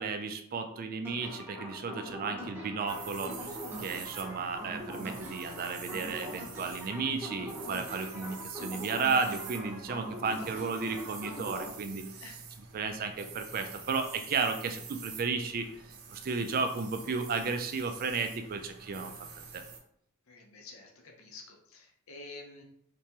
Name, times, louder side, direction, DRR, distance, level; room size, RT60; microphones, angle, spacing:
voice 1, 0.0-12.1 12.7-15.7 16.1-19.1 19.5-19.6, right 4 dB, 40° right, 7 dB, 0.3 m, -33 dB
sound 1, 1.0-11.7, equal, 10° right, 0.8 m, -42 dB
sound 2, 2.9-19.8, right 5 dB, 65° right, 0.7 m, -47 dB
voice 2, 20.3-22.6, left 3 dB, 60° left, 2 dB, 0.6 m, -49 dB
3.3 x 3.2 x 2.9 m, 0.72 s
head